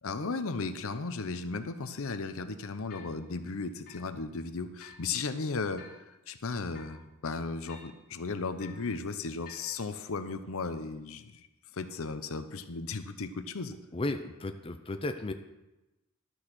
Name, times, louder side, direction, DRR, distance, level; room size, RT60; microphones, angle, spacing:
voice 1, 0.0-11.5 11.7-13.8, left 4 dB, 70° left, 10 dB, 0.7 m, -35 dB
sound 1, 2.0-2.1 2.9-3.2 3.9-4.1 4.8-5.0 5.8-6.1 6.7-7.0 7.6-8.0 8.6-8.9 9.4-9.7, left 6 dB, 45° left, 3.2 m, -52 dB
voice 2, 13.9-15.3, left 2 dB, 25° left, 7 dB, 0.6 m, -34 dB
12.0 x 6.3 x 6.1 m, 1.0 s
head